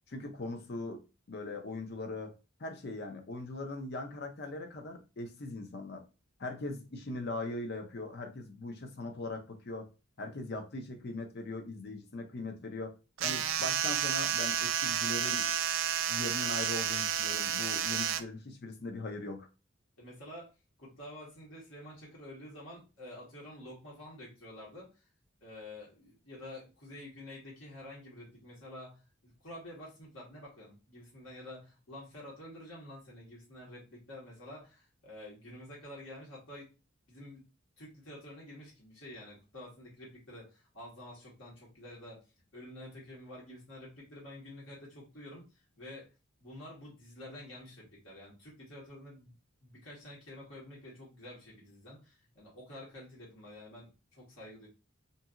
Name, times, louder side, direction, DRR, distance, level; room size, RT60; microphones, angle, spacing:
voice 1, 0.1-1.0 1.3-2.3 2.6-6.0 6.4-9.9 10.2-12.9 13.2-15.5 16.1-19.5, left 2 dB, 55° left, 0.6 m, -40 dB
sound 1, 13.2-18.2, right 9 dB, 75° right, 0.3 m, -31 dB
voice 2, 20.0-20.5 20.8-24.9 25.4-36.7 37.1-37.4 37.8-42.2 42.5-46.1 46.4-49.3 49.6-54.7, left 1 dB, 75° left, 1.4 m, -49 dB
2.7 x 2.7 x 2.4 m
head